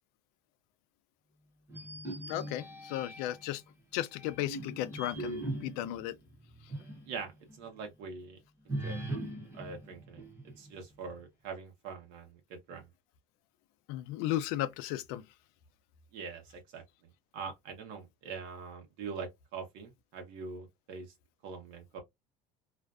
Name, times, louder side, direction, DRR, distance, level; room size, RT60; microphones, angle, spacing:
sound 1, 1.7-3.5 4.1-7.1 7.5-7.6 8.7-10.8, right 1 dB, 15° right, 0.8 m, -40 dB
voice 1, 2.3-3.6 3.9-6.1 13.9-15.2, left 13 dB, 85° left, 0.4 m, -35 dB
voice 2, 7.1-8.4 8.7-9.0 9.5-10.2 10.6-12.9 16.1-16.8 17.3-21.1 21.4-22.0, right 5 dB, 75° right, 0.9 m, -43 dB
2.5 x 2.2 x 2.4 m
cardioid pair, 155°, 16 cm